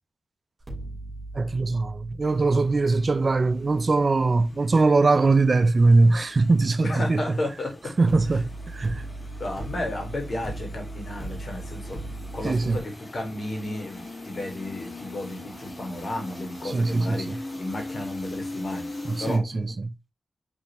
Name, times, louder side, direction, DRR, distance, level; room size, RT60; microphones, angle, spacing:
sound 1, 0.6-5.7 8.1-12.8, right 2 dB, 20° right, 2.5 m, -39 dB
voice 1, 1.3-7.4 8.0-9.0 12.4-12.8 16.6-17.4 19.0-19.9, right 3 dB, 55° right, 0.5 m, -21 dB
sound 2, 2.2-19.4, left 2 dB, 40° left, 1.7 m, -41 dB
voice 2, 6.8-7.9 9.4-12.0 12.3-19.8, left 1 dB, 65° left, 1.9 m, -33 dB
5.1 x 3.4 x 3.0 m
cardioid pair, 45°, 0 cm